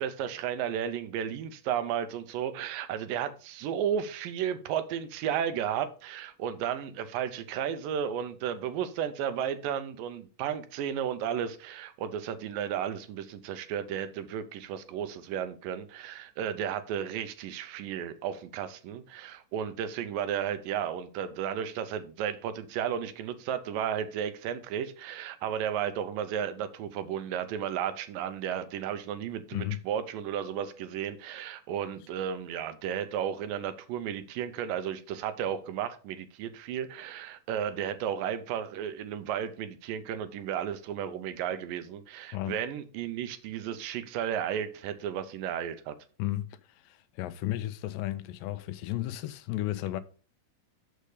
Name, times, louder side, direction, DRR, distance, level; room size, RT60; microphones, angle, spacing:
voice 1, 0.0-45.9, right 9 dB, 85° right, 2.5 m, -33 dB
voice 2, 46.8-50.0, left 15 dB, 90° left, 2.3 m, -33 dB
6.6 x 6.5 x 4.9 m
omnidirectional pair, 3.9 m